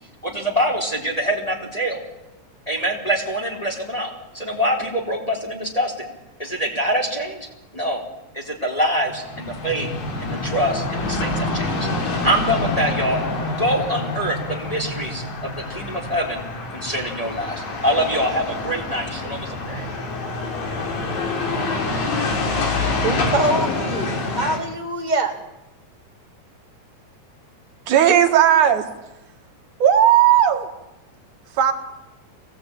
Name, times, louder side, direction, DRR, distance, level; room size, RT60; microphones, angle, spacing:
voice 1, 0.2-2.0 2.7-6.1 6.4-7.5 7.7-8.0 8.3-9.9 10.2-11.9 12.2-13.2 13.5-16.4 16.7-19.9, equal, 10° left, 0 dB, 3.4 m, -24 dB
sound 1, 9.0-24.6, left 2 dB, 80° left, 4.9 m, -26 dB
voice 2, 23.0-25.3, right 1 dB, 15° right, 1 dB, 2.5 m, -24 dB
voice 3, 27.9-28.8 29.8-30.7 31.6-31.7, right 10 dB, 65° right, 4 dB, 3.2 m, -15 dB
24.5 x 17.5 x 8.7 m, 0.97 s
omnidirectional pair, 3.9 m